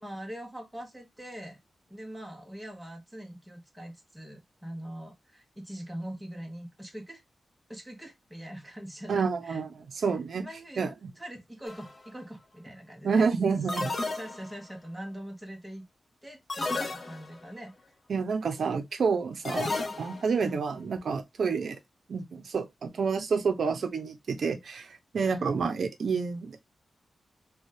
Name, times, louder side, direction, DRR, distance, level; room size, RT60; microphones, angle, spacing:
voice 1, 0.0-1.6 1.9-7.2 7.7-9.6 10.3-13.3 14.1-15.8 16.2-17.7 20.4-20.6 25.2-25.5, right 1 dB, 5° right, 0.9 m, -42 dB
voice 2, 9.1-10.5 10.8-10.9 13.0-14.0 18.1-19.7 20.0-21.8 22.1-24.9 25.1-26.6, right 5 dB, 65° right, 0.6 m, -29 dB
sound 1, 11.7-12.0 13.7-14.7 16.5-17.5 19.5-20.4, left 2 dB, 30° left, 0.5 m, -33 dB
3.4 x 2.2 x 2.6 m
wide cardioid pair, 165°, 0 cm